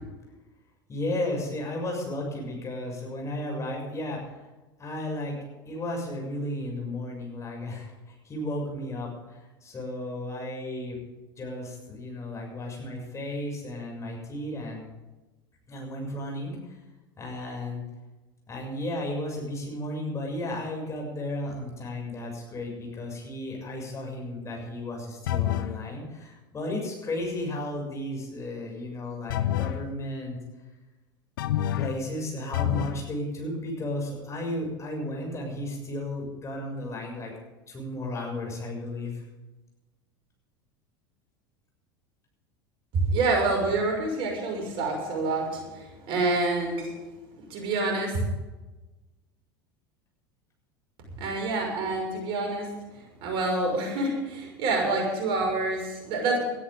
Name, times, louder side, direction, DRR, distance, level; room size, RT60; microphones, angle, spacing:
voice 1, 0.9-4.2 4.8-5.4 5.7-11.0 11.4-14.9 15.7-16.8 17.2-17.8 18.5-30.4 31.7-37.3 37.7-39.2, left 1 dB, 25° left, 0 dB, 6.9 m, -34 dB
sound 1, 25.3-25.8 29.3-29.8 31.4-32.0 32.5-33.0, left 12 dB, 65° left, 0.8 m, -27 dB
voice 2, 42.9-46.9 47.5-48.2 51.2-52.7 53.2-56.4, right 2 dB, 50° right, 1 dB, 6.1 m, -27 dB
20.5 x 13.5 x 3.8 m, 1.1 s
figure-of-eight pair, 75°, 12 cm